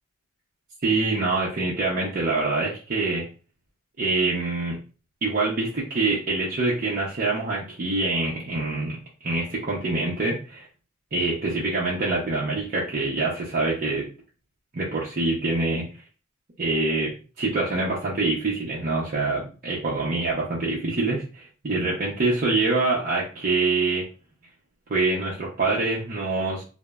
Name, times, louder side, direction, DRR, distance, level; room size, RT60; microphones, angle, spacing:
voice 1, 0.8-3.2 4.0-4.8 5.2-10.7 11.1-14.1 14.7-15.9 16.6-17.1 17.4-24.0 24.9-26.6, right 3 dB, 45° right, -5 dB, 0.6 m, -25 dB
3.0 x 2.0 x 2.2 m, 0.35 s
head